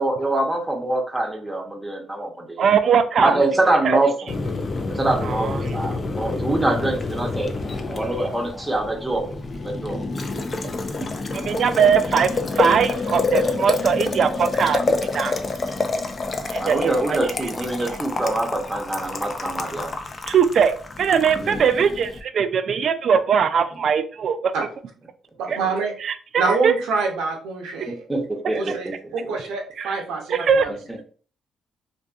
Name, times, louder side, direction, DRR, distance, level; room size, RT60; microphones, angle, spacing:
voice 1, 0.0-2.7 3.2-4.3 4.9-7.5 7.9-10.1 16.6-19.9 21.4-21.7 27.9-28.9 29.2-29.3 30.7-31.0, right 2 dB, 10° right, 1 dB, 0.6 m, -24 dB
voice 2, 2.6-3.4 3.8-4.0 5.2-5.5 11.3-14.8 15.1-15.4 16.5-17.2 20.3-24.5 25.5-25.6 26.0-26.7 29.8-29.9 30.3-30.7, right 7 dB, 60° right, 10 dB, 0.3 m, -20 dB
Boiling, 4.3-22.2, left 3 dB, 35° left, 0.4 m, -28 dB
voice 3, 11.0-11.4 24.5-24.7 25.4-25.9 26.4-28.0 28.5-30.7, right 4 dB, 90° right, 1 dB, 0.6 m, -26 dB
2.6 x 2.5 x 2.3 m, 0.42 s
cardioid pair, 90°, 0 cm